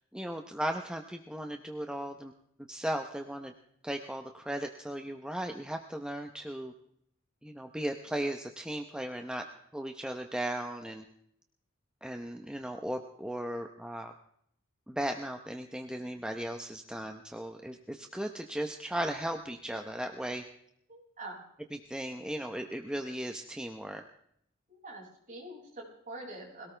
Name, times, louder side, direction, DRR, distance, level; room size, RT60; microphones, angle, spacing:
voice 1, 0.1-2.3 2.7-3.5 3.8-6.7 7.4-9.4 9.7-11.0 12.0-14.1 14.9-20.4 21.7-24.0, right 1 dB, 5° right, 4 dB, 0.9 m, -36 dB
voice 2, 20.9-21.4 24.7-26.7, right 2 dB, 40° right, -2 dB, 6.5 m, -45 dB
22.0 x 18.0 x 3.4 m, 0.72 s
head